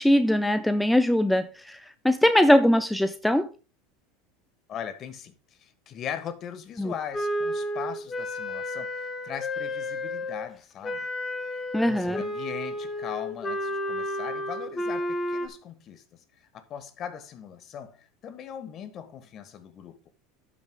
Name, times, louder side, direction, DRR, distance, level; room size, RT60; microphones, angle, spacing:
voice 1, 0.0-1.8 2.0-3.5 6.8-6.9 11.7-12.2, left 1 dB, 5° left, 0.6 m, -21 dB
voice 2, 4.7-5.3 5.6-11.1 11.5-20.1, left 8 dB, 40° left, 1.5 m, -40 dB
Wind instrument woodwind instrument, 7.1-10.4 10.8-15.5, left 1 dB, 20° left, 1.7 m, -31 dB
11.5 x 6.3 x 3.9 m
supercardioid pair, 105°, 0 cm